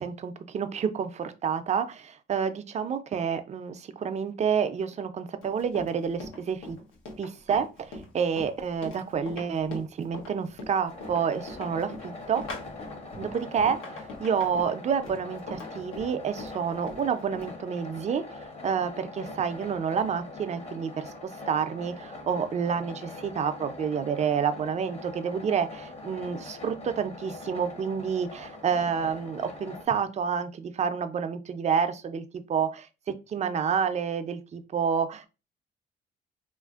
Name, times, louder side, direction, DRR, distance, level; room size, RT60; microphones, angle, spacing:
voice 1, 0.0-6.8 7.2-12.4 13.2-18.2 18.6-35.3, right 7 dB, 35° right, 9 dB, 0.4 m, -29 dB
Run, 5.4-17.6, left 2 dB, 85° left, 0.9 m, -41 dB
sound 1, 10.9-29.9, left 3 dB, 30° left, 0.8 m, -43 dB
3.0 x 2.5 x 2.3 m, 0.30 s
cardioid pair, 90°, 20 cm